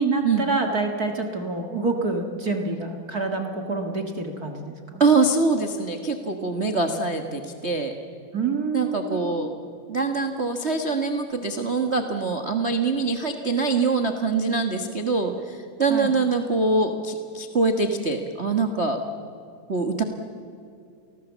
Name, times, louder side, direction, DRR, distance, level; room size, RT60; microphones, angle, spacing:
voice 1, 0.0-5.0 8.3-9.3 15.9-16.1, right 3 dB, 35° right, 4 dB, 1.6 m, -27 dB
voice 2, 5.0-7.9 8.7-9.5 9.9-19.0 19.7-20.0, right 3 dB, 90° right, 6 dB, 0.5 m, -24 dB
29.0 x 19.0 x 7.4 m, 2.6 s
omnidirectional pair, 3.7 m